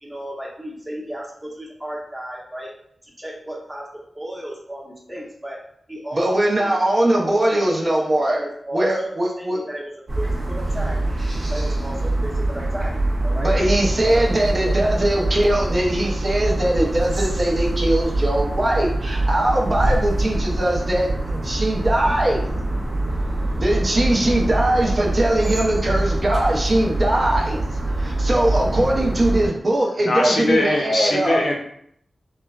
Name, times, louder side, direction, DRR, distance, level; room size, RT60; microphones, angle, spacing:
voice 1, 0.0-2.7 3.0-3.9 4.1-5.6 5.9-11.0 11.5-12.9 13.2-13.6 14.0-14.3 19.7-19.8 22.1-22.2 22.4-23.6, right 1 dB, 15° right, -3 dB, 0.8 m, -35 dB
voice 2, 6.1-8.5 8.7-9.6 13.4-22.5 23.5-31.4, right 1 dB, 45° right, -1 dB, 0.6 m, -21 dB
sound 1, 10.1-29.5, right 2 dB, 65° right, 0.9 m, -24 dB
voice 3, 30.0-31.5, left 2 dB, 80° left, -1 dB, 0.5 m, -21 dB
3.1 x 2.1 x 2.3 m, 0.68 s
cardioid pair, 65°, 0 cm